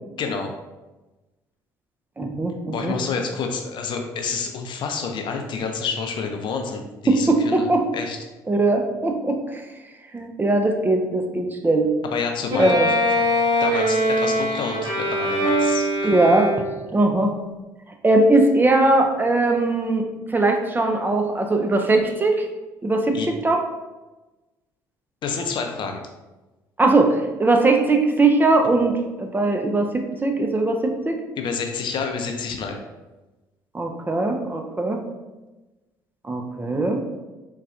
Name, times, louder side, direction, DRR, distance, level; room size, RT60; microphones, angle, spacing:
voice 1, 0.2-0.5 2.7-7.7 7.9-8.2 12.1-12.8 13.2-13.3 13.6-15.9 23.1-23.3 25.2-26.0 31.4-32.8, left 5 dB, 55° left, 4 dB, 0.5 m, -28 dB
voice 2, 2.2-2.9 7.1-7.8 8.5-9.6 10.1-11.9 12.6-12.9 16.0-16.5 16.9-17.3 18.0-20.1 20.3-22.4 22.8-23.6 26.8-29.9 30.2-31.2 33.7-35.0 36.3-37.0, right 2 dB, 20° right, 3 dB, 0.5 m, -20 dB
Bowed string instrument, 12.5-16.9, equal, 45° right, 0.9 m, -22 dB
4.0 x 2.2 x 2.5 m, 1.1 s
hypercardioid pair, 60°, 10 cm